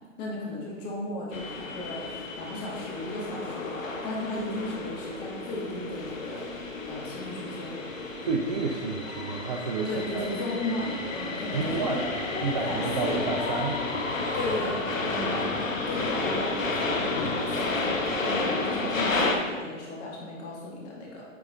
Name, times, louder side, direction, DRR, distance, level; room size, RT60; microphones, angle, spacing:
voice 1, 0.2-6.5 6.9-7.8 9.9-12.0 12.5-13.2 14.3-21.2, left 1 dB, 30° left, -3 dB, 1.8 m, -35 dB
sound 1, 1.3-19.4, left 3 dB, 85° left, 0.9 m, -31 dB
voice 2, 8.2-10.3 11.5-12.0 12.4-13.8, right 4 dB, 35° right, 2 dB, 0.4 m, -30 dB
9.2 x 4.8 x 2.6 m, 1.5 s
figure-of-eight pair, 125°, 39 cm